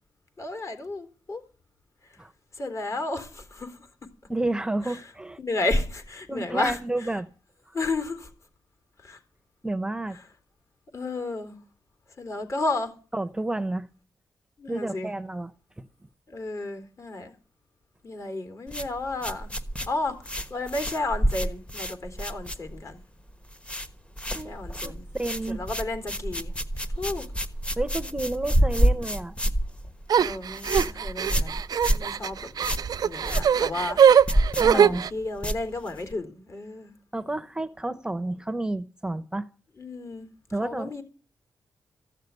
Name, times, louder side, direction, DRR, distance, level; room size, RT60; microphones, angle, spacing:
voice 1, 0.4-1.4 2.0-2.2 2.5-3.9 4.8-5.1 5.4-6.8 7.7-8.3 9.0-9.2 10.1-10.2 10.9-11.6 12.2-12.9 14.6-15.1 16.3-17.3 18.0-19.5 19.9-23.0 24.4-25.1 25.5-26.5 27.0-27.3 30.1-31.6 31.9-32.5 33.0-34.0 34.7-36.9 39.8-40.3 40.6-41.0, left 2 dB, 45° left, 3.8 m, -32 dB
voice 2, 4.3-5.4 6.3-7.3 7.7-7.8 9.6-10.2 13.1-13.9 14.7-15.5 15.8-15.9 24.2-24.5 24.8-25.6 27.8-29.4 34.6-35.0 37.1-39.5 40.5-40.9, right 2 dB, 10° right, 0.8 m, -30 dB
sound 1, 18.7-23.0 23.3-23.9 24.2-36.1, right 1 dB, 15° left, 1.3 m, -28 dB
sound 2, 30.1-35.1, right 8 dB, 65° right, 0.6 m, -21 dB
15.0 x 6.6 x 9.6 m
cardioid pair, 95°, 7 cm